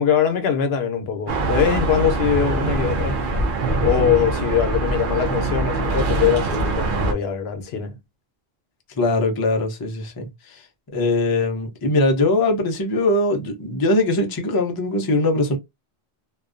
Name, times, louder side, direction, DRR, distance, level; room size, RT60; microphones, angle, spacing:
voice 1, 0.0-3.2 3.8-8.0, left 8 dB, 75° left, 0.8 m, -22 dB
sound 1, 1.3-7.1, right 3 dB, 60° right, 0.7 m, -23 dB
voice 2, 8.9-10.7 10.9-15.6, left 2 dB, 35° left, 0.3 m, -21 dB
2.4 x 2.2 x 2.4 m
omnidirectional pair, 1.1 m